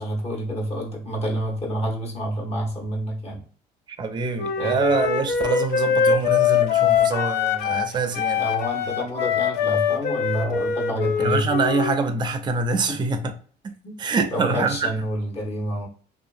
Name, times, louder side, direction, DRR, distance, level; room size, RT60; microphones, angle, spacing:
voice 1, 0.0-3.4 4.6-4.8 8.4-11.5 12.9-13.0 13.8-14.0 14.3-15.9, equal, 40° left, 1.1 m, -28 dB
voice 2, 4.0-8.4 11.2-13.3 13.6-13.7 14.0-14.9, right 4 dB, 25° right, 0.5 m, -25 dB
Wind instrument woodwind instrument, 4.4-7.9 8.1-12.0, left 8 dB, 75° left, 0.5 m, -23 dB
2.7 x 2.5 x 2.5 m
cardioid pair, 110°, 17 cm